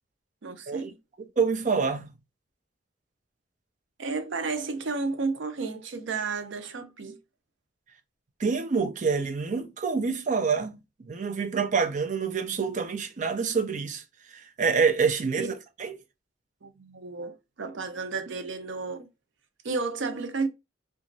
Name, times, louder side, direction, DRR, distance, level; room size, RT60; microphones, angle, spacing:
voice 1, 0.4-0.9 4.0-7.2 15.4-15.5 16.6-19.1 19.6-20.5, right 4 dB, 85° right, 0.6 m, -32 dB
voice 2, 1.2-2.1 8.4-14.0 14.3-15.5 15.8-16.0, right 5 dB, 45° right, 0.5 m, -27 dB
2.9 x 2.4 x 2.5 m
head